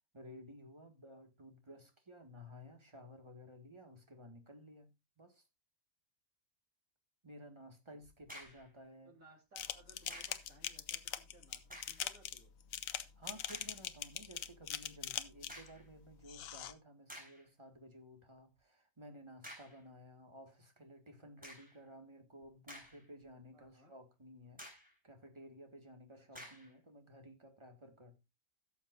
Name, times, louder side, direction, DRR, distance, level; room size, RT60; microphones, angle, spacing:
voice 1, 0.1-4.9 5.2-5.4 7.2-9.1 13.2-24.6 25.0-28.2, equal, 20° right, 1.6 m, -55 dB
sound 1, 8.2-8.7 10.1-10.5 11.6-12.1 12.7-12.8 13.5-13.8 15.5-15.9 16.6-16.7 17.1-17.5 19.4-19.8 21.4-21.8 22.4-23.2 23.6-23.7 24.6-25.0 26.3-26.7, equal, 5° right, 3.9 m, -52 dB
voice 2, 9.0-12.5 23.5-23.9 26.2-26.5, right 1 dB, 90° right, 3.8 m, -63 dB
sound 2, 9.6-15.7 16.2-16.7, left 10 dB, 80° left, 1.1 m, -42 dB
16.5 x 7.2 x 2.5 m
omnidirectional pair, 1.4 m